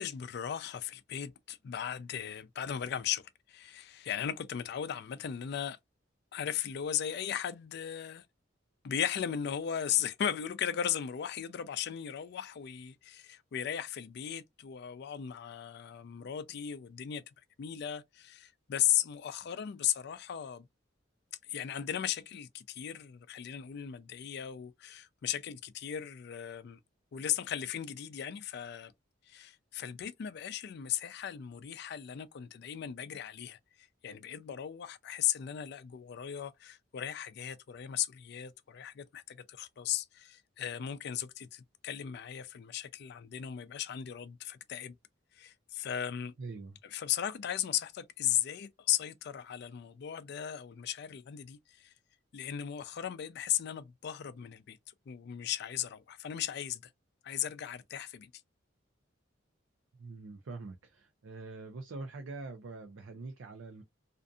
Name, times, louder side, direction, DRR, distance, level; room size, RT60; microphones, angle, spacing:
voice 1, 0.0-5.8 6.3-8.2 8.8-17.2 17.6-20.7 21.4-26.8 27.1-28.9 29.3-45.0 45.3-46.3 46.9-51.9 52.3-54.8 55.1-56.9 57.2-58.3, left 10 dB, 60° left, 0.4 m, -36 dB
voice 2, 46.4-46.8 59.9-63.8, right 3 dB, 90° right, 0.5 m, -44 dB
2.5 x 2.5 x 2.3 m
head